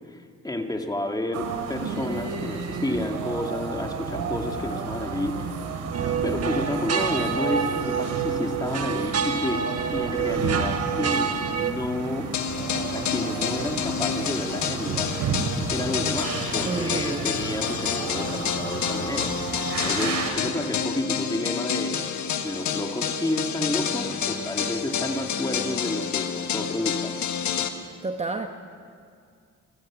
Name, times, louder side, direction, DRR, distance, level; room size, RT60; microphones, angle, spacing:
voice 1, 0.1-5.6 6.2-12.3 12.8-15.1 15.7-22.1 22.4-27.2, left 1 dB, 15° left, 4 dB, 2.0 m, -30 dB
sound 1, 1.3-20.3, right 5 dB, 85° right, 2.7 m, -32 dB
sound 2, 5.9-11.7, right 6 dB, 55° right, 1.5 m, -27 dB
sound 3, 12.3-27.7, left 7 dB, 70° left, 1.5 m, -29 dB
voice 2, 16.7-17.3 28.0-28.5, right 3 dB, 20° right, 5 dB, 1.2 m, -29 dB
28.0 x 15.0 x 6.1 m, 2.2 s
cardioid pair, 90°, 30 cm